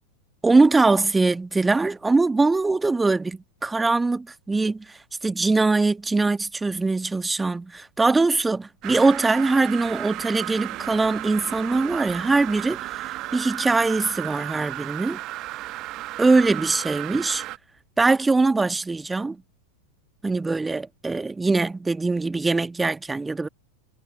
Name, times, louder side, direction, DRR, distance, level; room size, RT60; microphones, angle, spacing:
voice 1, 0.4-15.2 16.2-17.4 18.0-19.4 20.2-23.5, right 3 dB, 10° right, 1.4 m, -22 dB
sound 1, 8.8-17.6, right 17 dB, 35° right, 1.1 m, -34 dB
figure-of-eight pair, 90°, 0 cm